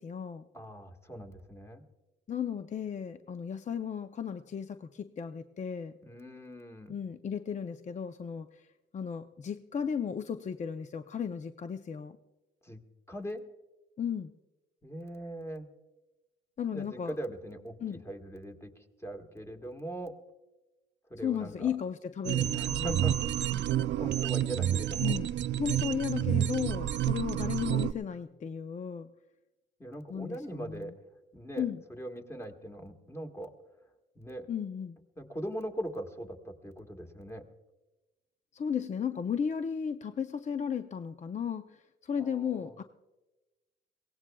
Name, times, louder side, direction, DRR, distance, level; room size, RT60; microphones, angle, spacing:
voice 1, 0.0-0.5 2.3-5.9 6.9-8.7 8.9-12.2 14.0-14.3 16.6-17.2 17.8-18.0 21.2-23.0 25.0-25.3 25.6-29.1 30.1-30.9 31.6-31.8 34.5-35.0 38.5-42.8, left 7 dB, 35° left, 9 dB, 0.6 m, -35 dB
voice 2, 0.5-1.8 6.0-6.9 12.6-12.8 13.1-13.4 14.8-15.7 16.7-20.1 21.1-21.8 22.5-23.6 24.0-25.1 29.8-33.5 34.2-34.5 35.2-37.4 42.2-42.8, right 1 dB, 15° left, 4 dB, 1.6 m, -41 dB
sound 1, 22.2-27.9, right 11 dB, 65° right, 0.5 m, -29 dB
22.5 x 17.5 x 2.3 m, 1.1 s
cardioid pair, 90°, 20 cm